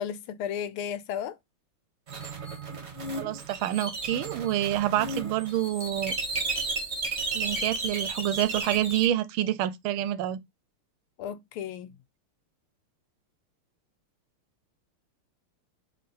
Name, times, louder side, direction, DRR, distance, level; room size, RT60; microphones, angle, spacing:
voice 1, 0.0-1.4 11.2-11.9, left 8 dB, 80° left, 1.5 m, -34 dB
sound 1, 2.1-9.1, right 3 dB, 35° right, 1.4 m, -33 dB
voice 2, 3.1-6.1 7.3-10.4, right 12 dB, 80° right, 1.4 m, -27 dB
3.5 x 3.5 x 4.1 m
omnidirectional pair, 2.4 m